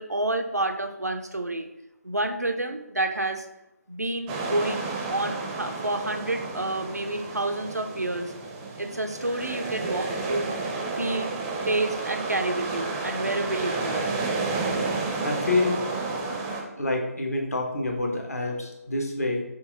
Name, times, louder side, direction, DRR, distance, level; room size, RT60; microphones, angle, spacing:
voice 1, 0.0-1.7 2.0-3.5 3.9-8.3 8.8-10.5 11.0-11.3 11.7-14.0, right 2 dB, 90° right, 6 dB, 0.5 m, -29 dB
sound 1, 4.3-16.6, right 3 dB, 10° right, 0.4 m, -31 dB
voice 2, 15.2-16.1 16.8-19.4, left 2 dB, 70° left, 1 dB, 1.0 m, -27 dB
5.8 x 2.5 x 3.6 m, 0.90 s
figure-of-eight pair, 145°, 9 cm